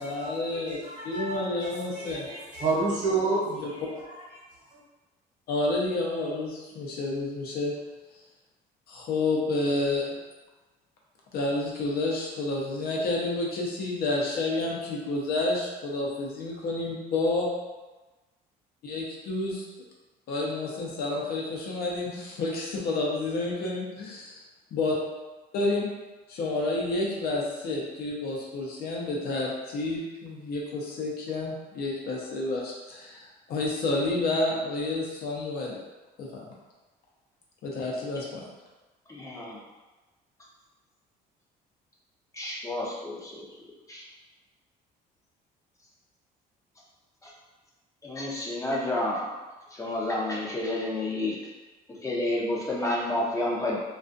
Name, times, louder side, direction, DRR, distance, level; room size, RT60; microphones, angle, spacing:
voice 1, 0.0-0.8 1.0-2.3 3.5-3.7 5.5-7.7 8.9-10.2 11.3-17.5 18.8-19.6 20.3-24.4 24.7-24.9 25.5-25.9 26.3-35.8 36.2-36.4 37.6-38.4, left 2 dB, 65° left, -3 dB, 0.7 m, -30 dB
voice 2, 0.8-3.5 4.0-4.2, right 3 dB, 45° right, -6 dB, 1.0 m, -30 dB
voice 3, 39.1-39.6 42.3-43.5 43.9-44.0 47.2-47.3 48.0-49.3 49.7-51.4 51.9-53.8, left 1 dB, 20° left, -4 dB, 0.6 m, -30 dB
2.4 x 2.3 x 2.5 m, 1.2 s
cardioid pair, 110°, 17 cm